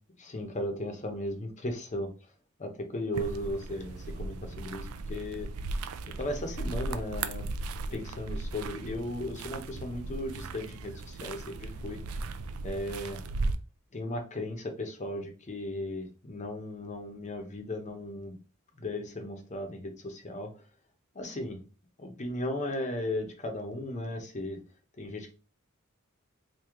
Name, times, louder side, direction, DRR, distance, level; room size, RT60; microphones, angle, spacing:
voice 1, 0.2-2.1 2.6-5.5 6.2-7.4 7.9-12.0 12.6-13.2 13.9-18.4 18.8-20.5 21.1-21.6 22.0-24.6 25.0-25.3, left 1 dB, 35° left, 4 dB, 0.8 m, -36 dB
sound 1, 3.1-13.6, right 3 dB, 80° right, 0.4 m, -37 dB
3.0 x 2.7 x 3.6 m, 0.34 s
head